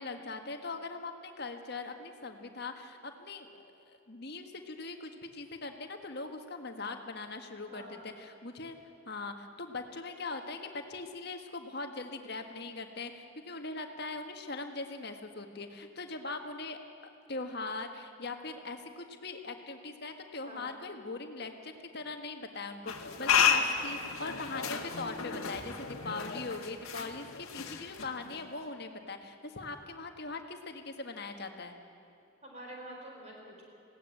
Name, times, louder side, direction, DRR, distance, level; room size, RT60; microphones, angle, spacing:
voice 1, 0.0-3.5 3.9-8.8 9.0-16.8 17.3-31.8, left 3 dB, 50° left, 5 dB, 1.6 m, -41 dB
voice 2, 7.7-8.1 20.4-20.7 32.4-33.6, right 1 dB, 30° right, -1 dB, 4.4 m, -47 dB
sound 1, 22.9-28.5, left 7 dB, 90° left, 1.8 m, -32 dB
19.5 x 17.0 x 9.0 m, 2.8 s
head